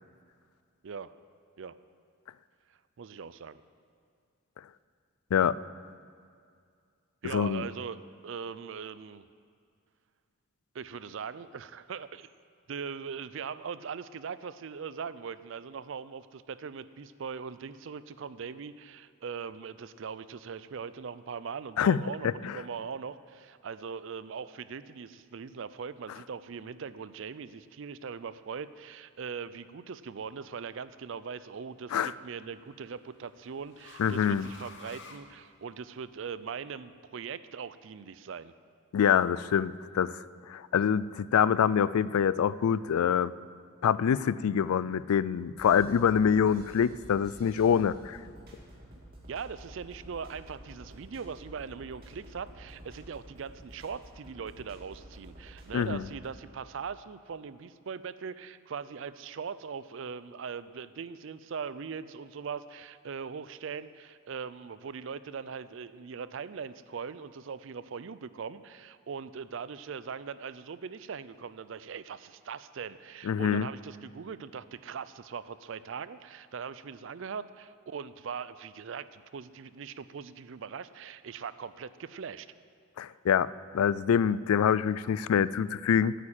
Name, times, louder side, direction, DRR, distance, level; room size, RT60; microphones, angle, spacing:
voice 1, 0.8-1.1 1.6-1.8 3.0-3.6 7.2-9.3 10.7-12.3 12.7-38.5 49.3-82.5, right 6 dB, 60° right, 15 dB, 0.4 m, -40 dB
voice 2, 7.3-7.6 21.8-22.5 31.9-32.1 34.0-34.5 38.9-40.1 40.5-43.3 43.8-48.2 55.7-56.0 73.3-73.7 83.0-83.5 83.7-86.1, left 8 dB, 85° left, 18 dB, 0.3 m, -25 dB
sound 1, 30.1-30.6 32.0-36.0, left 4 dB, 55° left, 0.9 m, -52 dB
sound 2, 45.6-56.3, right 1 dB, 45° right, 2.0 m, -50 dB
9.2 x 8.6 x 8.8 m, 2.3 s
head